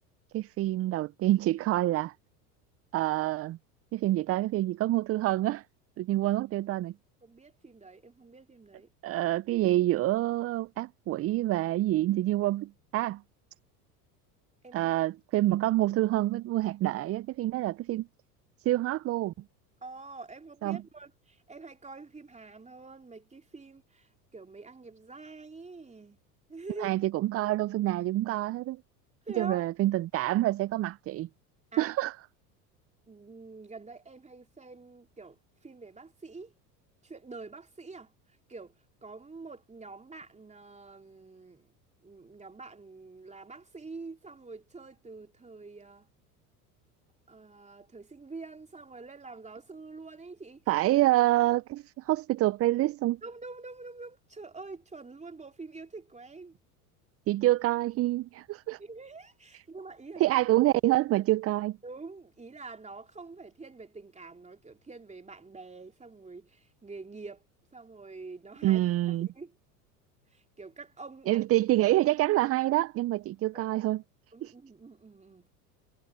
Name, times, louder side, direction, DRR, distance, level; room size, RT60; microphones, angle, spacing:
voice 1, 0.3-2.1 2.9-3.6 3.9-5.6 6.0-6.9 9.0-13.2 14.7-18.1 18.6-19.3 20.6-20.8 26.8-28.8 29.4-31.3 31.8-32.2 50.7-53.2 57.3-58.8 60.2-61.8 68.6-69.3 71.3-74.0 74.4-74.5, right 16 dB, 30° right, 0.6 m, -27 dB
voice 2, 7.2-8.9 14.6-14.9 19.8-26.2 26.5-26.9 29.2-29.7 31.7-31.9 33.1-36.5 37.0-38.1 38.5-38.8 39.0-41.7 42.0-46.1 47.3-50.8 53.2-56.6 58.8-60.3 61.8-67.4 67.7-68.9 69.2-69.5 70.3-71.4 73.5-73.7 74.3-75.5, right 3 dB, 15° right, 3.2 m, -46 dB
hypercardioid pair, 80°, 47 cm